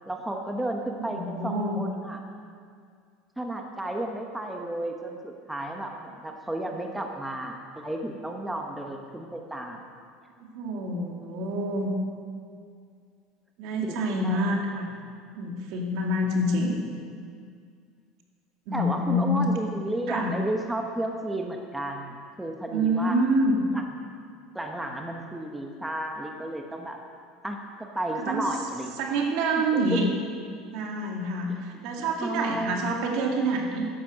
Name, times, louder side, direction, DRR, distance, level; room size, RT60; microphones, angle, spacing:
voice 1, 0.1-2.2 3.4-9.8 13.8-14.6 18.7-23.2 23.7-23.8 24.5-27.0 27.4-28.9 29.7-29.8 32.0-32.8, right 1 dB, 5° right, 2 dB, 1.1 m, -33 dB
voice 2, 1.0-1.8 6.7-6.9 10.4-11.9 13.6-15.0 15.3-16.8 18.7-19.4 20.1-20.3 22.7-23.6 28.2-28.5 29.0-30.1 30.6-33.8, right 1 dB, 65° right, 1 dB, 2.4 m, -27 dB
12.5 x 10.5 x 6.4 m, 2.2 s
supercardioid pair, 135°, 0 cm